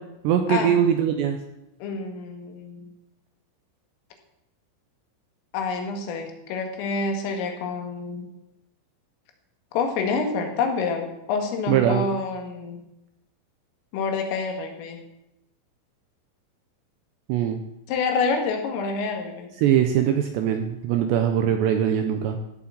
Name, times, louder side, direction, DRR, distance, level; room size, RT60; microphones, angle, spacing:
voice 1, 0.2-1.4 11.7-12.1 17.3-17.6 19.6-22.4, right 9 dB, 80° right, 6 dB, 2.6 m, -21 dB
voice 2, 1.8-2.9 5.5-8.3 9.7-12.8 13.9-15.0 17.9-19.5, left 4 dB, 75° left, 4 dB, 4.3 m, -27 dB
15.0 x 7.9 x 7.7 m, 0.89 s
omnidirectional pair, 5.9 m